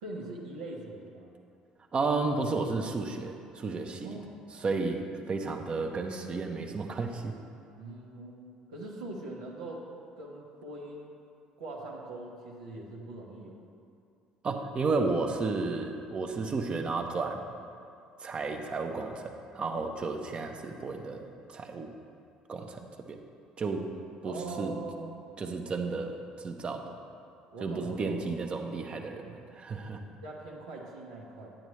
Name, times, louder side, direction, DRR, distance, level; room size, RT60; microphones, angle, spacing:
voice 1, 0.0-1.3 4.0-4.5 7.8-9.9 10.2-11.1 11.6-13.6 24.2-25.1 27.5-28.2 30.2-31.6, right 2 dB, 80° right, -4 dB, 1.4 m, -42 dB
voice 2, 1.9-4.1 4.6-7.3 14.4-17.6 18.2-21.9 22.5-22.8 23.1-23.2 23.6-23.8 24.2-24.7 25.4-27.0 27.6-30.0, right 3 dB, 35° right, 4 dB, 1.0 m, -32 dB
10.5 x 9.0 x 3.2 m, 2.5 s
hypercardioid pair, 60°, 3 cm